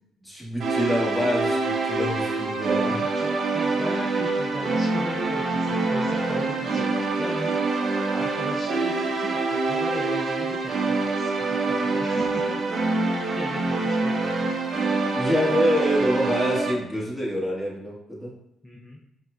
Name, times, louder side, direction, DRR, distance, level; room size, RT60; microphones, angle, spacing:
voice 1, 0.2-3.0 15.1-18.3, equal, 5° right, -5 dB, 1.4 m, -26 dB
sound 1, 0.6-16.7, right 3 dB, 55° right, 0.5 m, -25 dB
voice 2, 2.5-7.8 8.1-12.7 13.0-14.5 15.4-15.5 18.6-19.0, equal, 10° left, -3 dB, 0.5 m, -37 dB
4.7 x 2.2 x 2.4 m, 0.80 s
cardioid pair, 90°, 0 cm